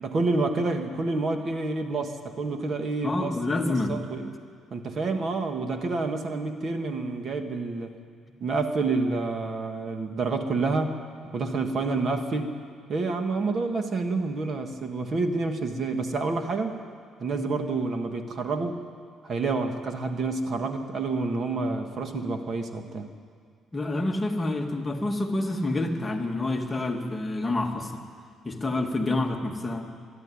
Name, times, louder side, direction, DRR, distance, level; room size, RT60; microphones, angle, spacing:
voice 1, 0.0-3.4 3.7-4.3 4.7-7.9 8.4-11.0 11.3-12.5 12.9-16.8 17.2-18.8 19.2-23.1, right 3 dB, 40° right, 6 dB, 1.6 m, -28 dB
voice 2, 3.0-4.0 23.7-28.0 28.4-29.9, left 2 dB, 15° left, 3 dB, 1.6 m, -28 dB
23.0 x 12.5 x 9.8 m, 2.1 s
cardioid pair, 135°, 0 cm